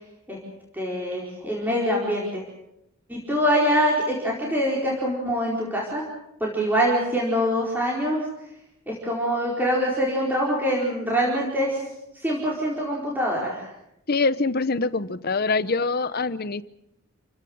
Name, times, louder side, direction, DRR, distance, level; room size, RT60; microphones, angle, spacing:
voice 1, 0.7-2.4 3.1-6.0 6.4-8.2 8.9-11.8 12.1-13.7, equal, 10° right, -4 dB, 4.5 m, -24 dB
voice 2, 14.1-16.6, left 3 dB, 45° left, 15 dB, 0.8 m, -24 dB
29.5 x 16.5 x 7.9 m, 0.82 s
head